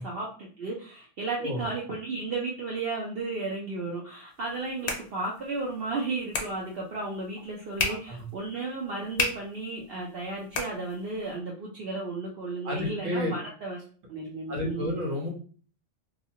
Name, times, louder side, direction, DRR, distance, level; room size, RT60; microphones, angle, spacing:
voice 1, 0.0-13.8 14.1-15.0, right 3 dB, 60° right, -3 dB, 0.7 m, -34 dB
sound 1, 4.3-11.4, left 3 dB, 70° left, 0.3 m, -36 dB
voice 2, 7.9-8.2 12.6-13.3 14.5-15.3, left 1 dB, 80° right, -1 dB, 1.3 m, -31 dB
2.7 x 2.4 x 2.7 m, 0.42 s
omnidirectional pair, 1.3 m